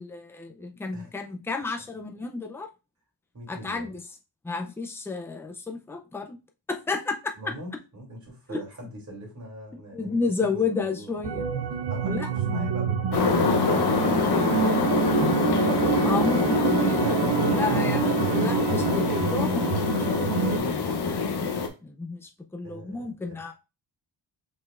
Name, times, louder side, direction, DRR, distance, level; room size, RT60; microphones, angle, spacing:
voice 1, 0.0-2.7 3.5-4.0 4.4-6.4 6.7-7.2 8.5-8.6 9.9-11.4 12.1-12.7 16.0-20.8 21.1-21.3 21.8-23.5, left 4 dB, 5° left, 0.4 m, -31 dB
voice 2, 3.3-3.9 7.3-11.2 11.9-14.8 17.0-17.8 20.5-20.8 22.6-23.5, equal, 35° right, 2.7 m, -42 dB
sound 1, 11.2-20.6, right 8 dB, 55° right, 0.6 m, -27 dB
sound 2, 13.1-21.7, left 5 dB, 55° left, 0.8 m, -25 dB
5.3 x 4.1 x 2.4 m
wide cardioid pair, 160°, 48 cm